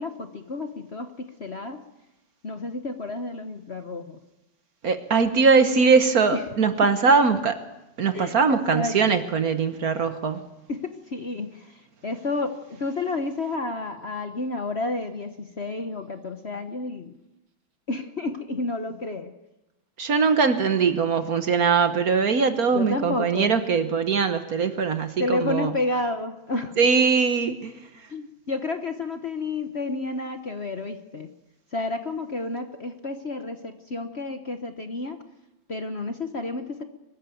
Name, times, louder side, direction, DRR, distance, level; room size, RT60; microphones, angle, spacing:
voice 1, 0.0-1.8 2.4-4.2 6.3-6.4 7.1-7.2 8.1-9.2 10.7-17.1 17.9-19.3 22.7-23.5 25.2-26.7 28.1-31.3 31.7-35.2 35.7-36.8, left 2 dB, 40° left, 7 dB, 1.1 m, -31 dB
voice 2, 4.8-7.6 8.0-10.4 20.0-25.7 26.8-27.7, right 5 dB, 50° right, 9 dB, 1.4 m, -21 dB
23.5 x 14.0 x 9.2 m, 0.97 s
omnidirectional pair, 2.1 m